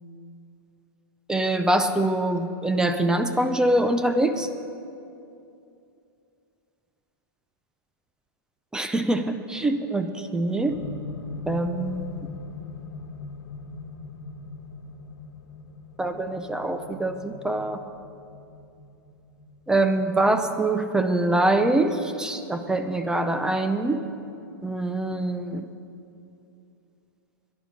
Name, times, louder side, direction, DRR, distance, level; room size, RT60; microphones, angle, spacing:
voice 1, 1.3-4.5 8.7-10.8 11.5-12.3 16.0-17.8 19.7-24.0 24.6-25.7, right 2 dB, 5° right, 8 dB, 0.4 m, -24 dB
sound 1, 10.7-22.8 23.8-23.9, left 4 dB, 75° left, 1.2 m, -41 dB
12.5 x 10.5 x 6.5 m, 2.7 s
hypercardioid pair, 150°, 12 cm